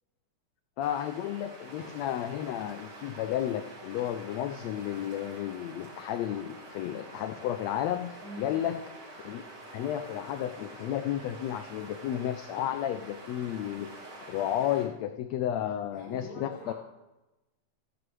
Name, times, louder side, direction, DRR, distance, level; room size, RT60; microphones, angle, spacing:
voice 1, 0.8-8.8 9.2-9.4 9.7-13.9 14.3-16.7, left 11 dB, 80° left, 9 dB, 1.5 m, -32 dB
sound 1, 0.8-14.9, right 2 dB, 80° right, 4.0 m, -47 dB
voice 2, 8.2-8.7 15.9-16.7, equal, 55° left, -8 dB, 5.4 m, -44 dB
14.0 x 12.0 x 3.2 m, 1.0 s
omnidirectional pair, 3.6 m